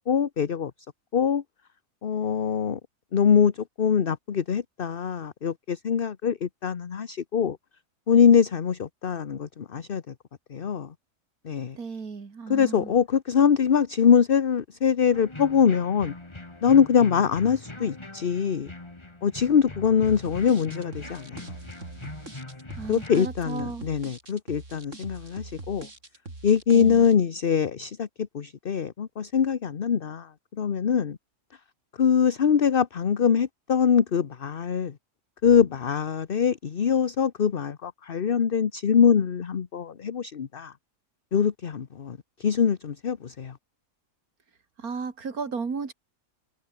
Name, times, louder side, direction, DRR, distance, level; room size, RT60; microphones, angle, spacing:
voice 1, 0.1-0.7 1.1-1.4 2.0-2.8 3.1-7.6 8.1-10.1 10.5-10.9 11.4-11.8 12.5-16.1 16.6-18.7 19.2-21.4 22.9-25.9 26.4-28.1 28.3-30.3 30.6-31.2 32.0-34.9 35.4-40.7 41.3-43.6, left 7 dB, 45° left, 1.1 m, -23 dB
voice 2, 11.8-12.9 22.7-23.9 26.7-27.0 44.8-45.9, right 5 dB, 85° right, 2.9 m, -34 dB
sound 1, 15.1-23.3, left 2 dB, 20° left, 2.0 m, -42 dB
sound 2, 20.0-27.1, right 2 dB, 55° right, 4.7 m, -42 dB
omnidirectional pair, 1.5 m